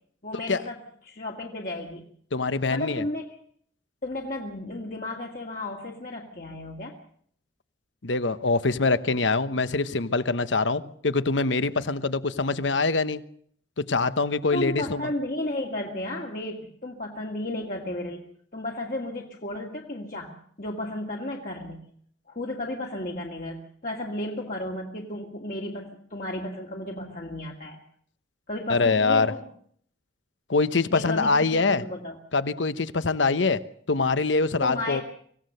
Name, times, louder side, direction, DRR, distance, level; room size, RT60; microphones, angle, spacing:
voice 1, 0.2-0.8 1.0-2.1 2.7-3.3 4.0-7.0 14.5-18.2 18.5-21.8 22.3-27.8 28.5-29.5 30.9-32.2 34.6-35.0, left 1 dB, 45° left, -1 dB, 2.1 m, -33 dB
voice 2, 2.3-3.0 8.0-13.2 13.8-15.1 28.7-29.3 30.5-31.8 32.3-33.6 33.9-35.0, left 3 dB, 80° left, 14 dB, 1.0 m, -24 dB
25.0 x 16.0 x 6.7 m, 0.62 s
head